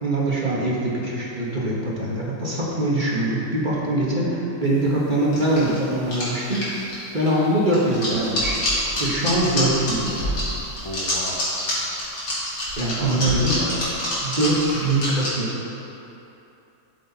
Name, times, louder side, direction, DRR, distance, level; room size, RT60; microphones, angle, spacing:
voice 1, 0.0-6.6 7.1-8.5 9.0-10.4 12.8-13.5 14.2-15.6, right 1 dB, 30° right, -5 dB, 1.6 m, -23 dB
sound 1, 5.3-15.3, left 1 dB, 90° left, 3.3 m, -26 dB
voice 2, 10.8-11.4 13.0-14.0, equal, 20° left, -6 dB, 0.8 m, -34 dB
12.0 x 7.1 x 4.2 m, 2.8 s
omnidirectional pair, 1.8 m